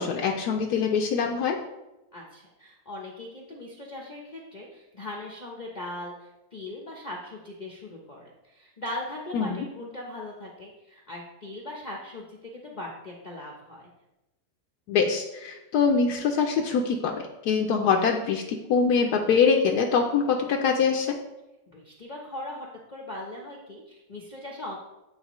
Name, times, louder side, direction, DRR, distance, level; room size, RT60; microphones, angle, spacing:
voice 1, 0.0-1.6 9.3-9.6 14.9-21.2, left 5 dB, 80° left, 2 dB, 1.1 m, -24 dB
voice 2, 2.1-13.9 21.7-24.8, left 1 dB, 45° left, -2 dB, 0.6 m, -39 dB
8.7 x 4.1 x 3.0 m, 0.97 s
omnidirectional pair, 1.7 m